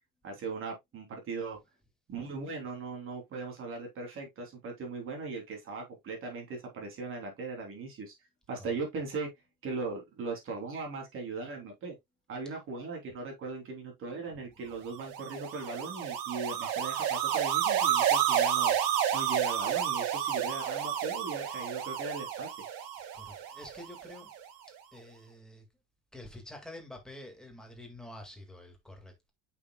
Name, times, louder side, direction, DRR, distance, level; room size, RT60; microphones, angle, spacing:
voice 1, 0.2-1.6 2.1-8.1 8.5-9.3 9.6-11.9 12.3-18.7 19.1-22.5, right 3 dB, 40° right, 3.1 m, -39 dB
sound 1, 15.0-24.3, right 9 dB, 80° right, 1.9 m, -30 dB
voice 2, 23.1-24.3 24.9-25.6 26.1-29.3, left 1 dB, ahead, 1.8 m, -48 dB
8.2 x 6.1 x 2.2 m
cardioid pair, 160°, 33 cm